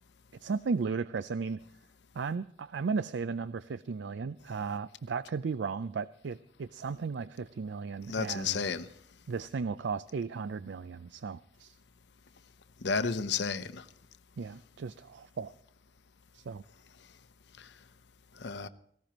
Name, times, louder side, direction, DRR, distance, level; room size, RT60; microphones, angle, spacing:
voice 1, 0.4-1.6 2.2-8.8 9.3-11.8 14.4-15.5 16.3-16.6, right 5 dB, 75° right, 0.4 m, -35 dB
voice 2, 8.1-8.9 12.8-13.7 18.4-18.7, left 5 dB, 70° left, 0.7 m, -31 dB
18.5 x 15.5 x 3.0 m
head